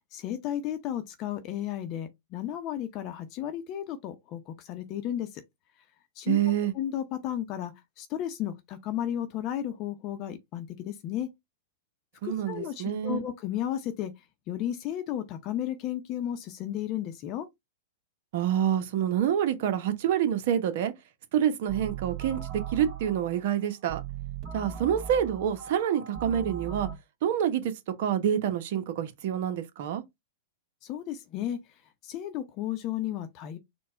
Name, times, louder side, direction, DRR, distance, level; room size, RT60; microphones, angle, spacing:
voice 1, 0.1-5.4 6.2-6.4 6.7-11.3 12.2-14.1 14.5-17.5 30.8-31.6 32.0-33.6, left 11 dB, 40° left, 0.8 m, -33 dB
voice 2, 6.3-6.7 12.2-13.2 18.3-20.9 21.3-24.0 24.5-26.9 27.2-27.7 28.0-30.0, right 9 dB, 60° right, 0.9 m, -27 dB
sound 1, 21.7-27.0, right 8 dB, 45° right, 1.6 m, -39 dB
4.4 x 2.3 x 4.4 m
hypercardioid pair, 120°, 0 cm